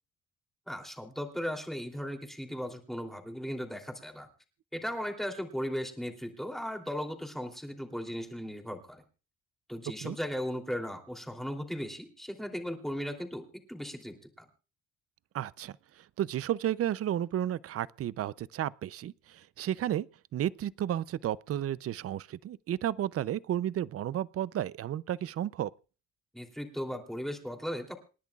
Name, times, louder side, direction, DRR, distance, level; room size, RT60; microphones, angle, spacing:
voice 1, 0.7-4.3 4.7-9.0 9.7-14.5 26.3-28.0, equal, ahead, 3.0 m, -37 dB
voice 2, 15.3-15.8 16.2-20.1 20.3-25.7, right 11 dB, 50° right, 0.5 m, -32 dB
28.0 x 10.5 x 2.4 m
cardioid pair, 90°, 30 cm